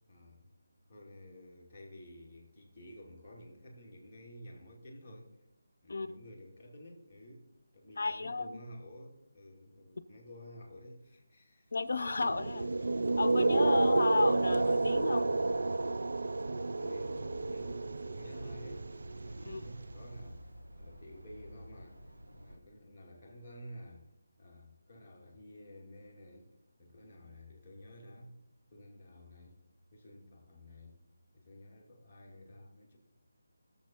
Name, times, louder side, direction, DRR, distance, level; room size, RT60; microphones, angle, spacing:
voice 1, 0.1-0.5 0.9-5.4 5.8-7.5 7.7-11.7 16.5-24.1 24.4-26.5 26.8-28.4 28.7-29.6 29.9-31.0 31.3-33.0, equal, 5° left, 2.3 m, -52 dB
voice 2, 8.0-8.6 11.7-12.7 13.2-15.3 19.5-19.6, left 3 dB, 50° left, 0.7 m, -33 dB
sound 1, 12.1-20.2, right 3 dB, 60° right, 0.4 m, -31 dB
sound 2, 17.0-22.6, equal, 80° right, 1.7 m, -52 dB
20.0 x 7.1 x 4.4 m
figure-of-eight pair, 180°, 0 cm